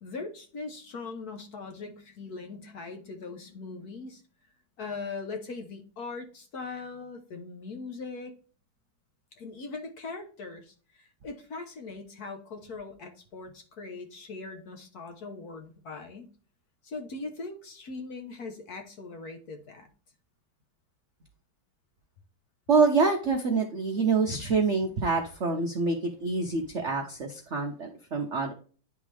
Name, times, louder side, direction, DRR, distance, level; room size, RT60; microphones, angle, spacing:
voice 1, 0.0-4.2 4.8-8.3 9.4-16.3 16.8-19.9, left 3 dB, 55° left, 5 dB, 1.2 m, -40 dB
voice 2, 22.7-28.5, right 4 dB, 60° right, 2 dB, 0.7 m, -26 dB
10.0 x 3.7 x 3.3 m, 0.40 s
omnidirectional pair, 2.3 m